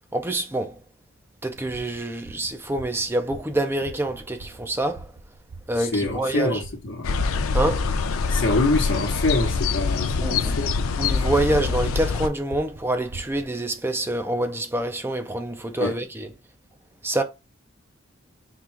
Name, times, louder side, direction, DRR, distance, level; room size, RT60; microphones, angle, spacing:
voice 1, 0.1-0.8 1.4-5.1 5.7-6.6 7.5-7.9 10.2-10.6 11.0-16.3 17.0-17.2, right 1 dB, 10° right, 0.5 m, -26 dB
sound 1, 1.5-13.5, right 2 dB, 75° right, 0.6 m, -43 dB
voice 2, 5.8-7.2 8.3-10.7 15.7-16.0, left 2 dB, 60° left, 1.0 m, -25 dB
sound 2, 7.0-12.3, left 4 dB, 90° left, 0.5 m, -24 dB
3.7 x 2.4 x 4.4 m
head